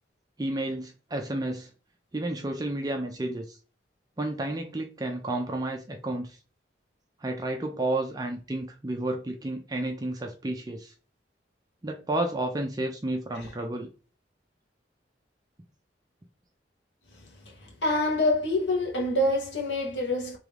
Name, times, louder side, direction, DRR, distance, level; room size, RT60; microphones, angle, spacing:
voice 1, 0.4-1.7 2.1-3.6 4.2-6.4 7.2-10.9 11.8-13.9, right 1 dB, 20° right, 0.5 m, -31 dB
voice 2, 17.1-20.4, left 1 dB, 85° left, 1.3 m, -27 dB
3.6 x 3.0 x 3.3 m
head